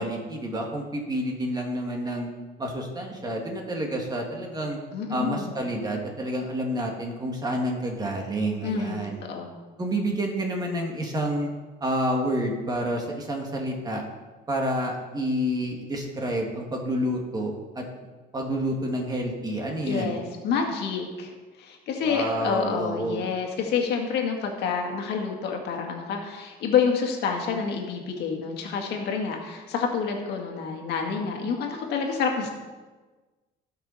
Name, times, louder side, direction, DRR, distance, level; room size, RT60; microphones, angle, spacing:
voice 1, 0.0-2.3 2.6-4.8 5.1-9.2 9.8-11.5 11.8-14.1 14.5-17.8 18.3-20.2 22.0-23.2, right 1 dB, 25° right, 0 dB, 2.1 m, -29 dB
voice 2, 4.9-5.5 8.6-9.5 19.9-21.3 21.6-32.5, left 6 dB, 75° left, 2 dB, 1.9 m, -28 dB
16.0 x 6.0 x 4.2 m, 1.3 s
cardioid pair, 110°, 17 cm